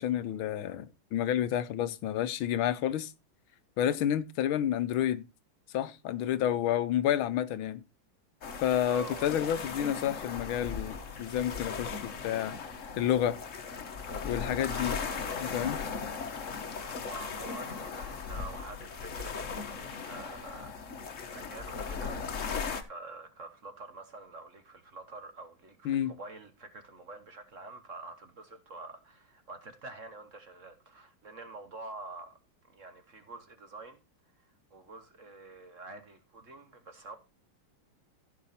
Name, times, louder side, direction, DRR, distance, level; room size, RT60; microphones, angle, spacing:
voice 1, 0.0-3.1 3.8-5.2 5.7-7.8 8.6-12.6 13.0-13.4 14.2-14.9 15.4-15.8 25.8-26.1, left 10 dB, 75° left, 1.5 m, -30 dB
sound 1, 8.4-22.8, left 5 dB, 45° left, 1.3 m, -38 dB
voice 2, 8.9-9.3 14.7-15.4 16.8-34.0 34.3-37.2, right 3 dB, 45° right, 1.3 m, -47 dB
15.0 x 5.5 x 4.2 m
omnidirectional pair, 2.3 m